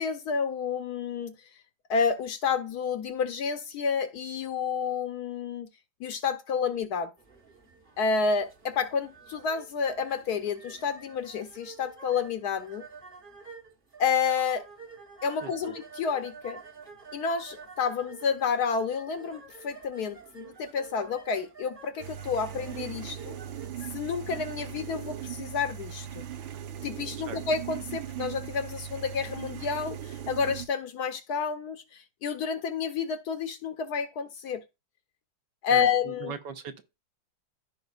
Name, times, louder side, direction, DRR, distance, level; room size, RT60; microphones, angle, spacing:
voice 1, 0.0-1.3 1.9-5.7 6.0-7.1 8.0-12.8 14.0-14.6 15.2-16.6 17.1-23.4 23.9-26.3 26.8-34.6 35.6-36.3, left 6 dB, 65° left, 1.0 m, -30 dB
sound 1, 7.2-24.6, right 5 dB, 30° right, 1.1 m, -49 dB
voice 2, 15.4-15.7 27.3-27.4 35.7-36.8, right 6 dB, 70° right, 1.5 m, -39 dB
sound 2, 22.0-30.7, right 9 dB, 85° right, 1.6 m, -39 dB
14.5 x 5.3 x 2.4 m
omnidirectional pair, 2.0 m